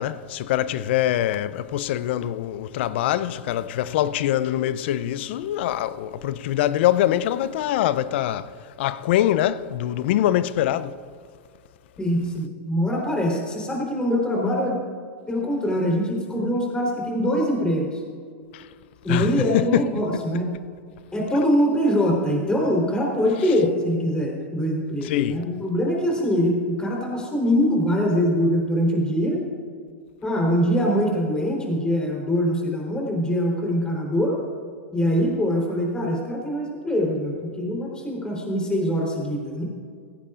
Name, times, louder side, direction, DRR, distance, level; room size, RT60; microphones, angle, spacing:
voice 1, 0.0-8.5 8.8-10.9 19.1-19.8 25.1-25.4, left 12 dB, 60° left, 0.5 m, -23 dB
voice 2, 12.0-14.8 15.3-18.0 19.0-20.5 21.1-29.4 30.2-34.4 34.9-39.6, equal, 15° left, 3.7 m, -23 dB
16.5 x 16.0 x 2.5 m
hypercardioid pair, 110°, 7 cm